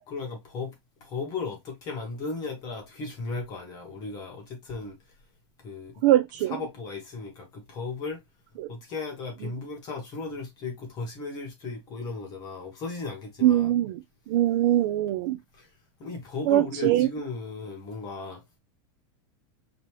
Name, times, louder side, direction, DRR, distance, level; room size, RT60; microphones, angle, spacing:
voice 1, 0.1-5.0 5.6-5.9 6.5-8.2 8.7-13.7 15.5-15.7 16.0-18.4, left 4 dB, 25° left, 1.2 m, -36 dB
voice 2, 6.0-6.6 8.6-8.7 13.4-15.4 16.5-17.1, right 13 dB, 45° right, 0.4 m, -22 dB
5.2 x 2.9 x 3.1 m
supercardioid pair, 175°, 15 cm